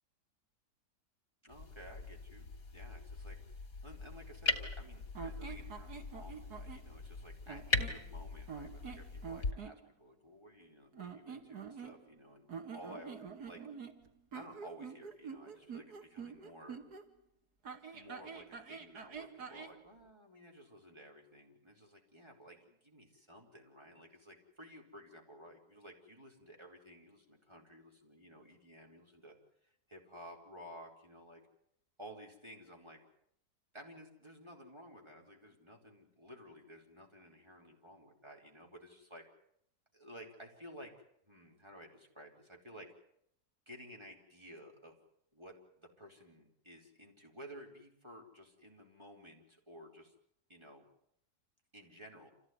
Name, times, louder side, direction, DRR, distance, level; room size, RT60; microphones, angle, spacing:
voice 1, 1.4-3.4 3.8-12.5 12.7-13.6 14.3-16.8 17.9-29.3 29.6-31.4 32.0-33.0 33.7-39.2 39.9-40.9 41.2-42.9 43.7-45.0 45.3-50.1 50.5-50.9 51.7-52.3, equal, 15° right, 1 dB, 4.8 m, -54 dB
sound 1, 1.5-9.5, left 3 dB, 60° left, 3.5 m, -40 dB
sound 2, 5.1-6.9 7.5-8.0 8.5-9.8 10.9-12.2 12.5-17.0 17.6-19.8, right 6 dB, 80° right, 2.6 m, -46 dB
27.5 x 17.0 x 9.7 m, 0.73 s
omnidirectional pair, 1.7 m